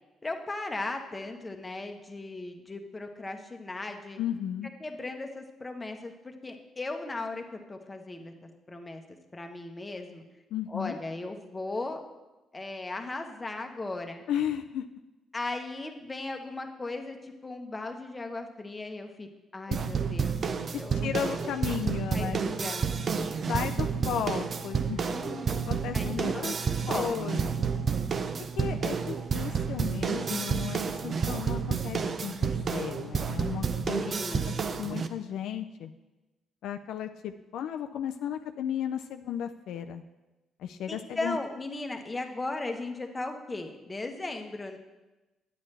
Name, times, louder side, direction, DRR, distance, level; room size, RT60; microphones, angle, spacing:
voice 1, 0.2-4.2 4.8-9.0 9.3-10.2 10.7-12.0 12.5-14.2 15.3-19.3 19.5-20.5 20.8-21.1 21.7-23.0 25.1-26.4 26.7-27.1 34.0-34.6 40.9-44.8, left 2 dB, 20° left, 4 dB, 1.0 m, -37 dB
voice 2, 4.2-4.7 10.5-11.0 14.3-14.8 19.7-19.8 20.7-22.4 23.5-25.0 25.7-26.5 26.9-27.7 28.6-34.5 34.8-35.9 36.6-40.0 40.6-41.4, left 9 dB, 80° left, 7 dB, 0.3 m, -34 dB
sound 1, 19.7-35.1, right 6 dB, 45° right, 0.5 m, -30 dB
9.1 x 8.6 x 3.3 m, 1.1 s
cardioid pair, 90°, 0 cm